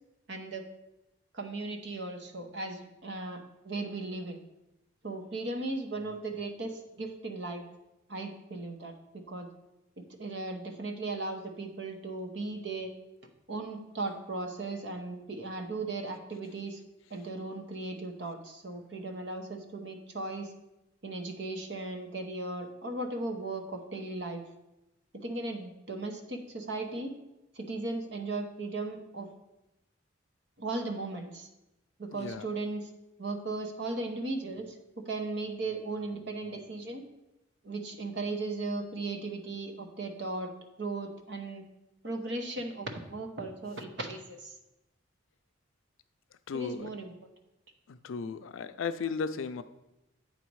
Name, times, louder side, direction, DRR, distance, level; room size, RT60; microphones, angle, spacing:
voice 1, 0.3-0.6 1.3-4.4 5.0-7.6 8.1-8.9 9.3-9.5 10.2-12.9 13.5-16.8 17.1-20.5 21.0-24.4 25.1-27.1 27.5-29.3 30.6-31.5 32.0-32.9 33.2-37.0 37.6-40.5 40.8-41.6 42.0-44.5 46.5-47.1, right 2 dB, 60° right, 4 dB, 0.9 m, -37 dB
voice 2, 32.1-32.5 46.5-46.9 47.9-49.6, left 5 dB, 85° left, 12 dB, 0.4 m, -35 dB
8.4 x 4.1 x 4.7 m, 0.93 s
head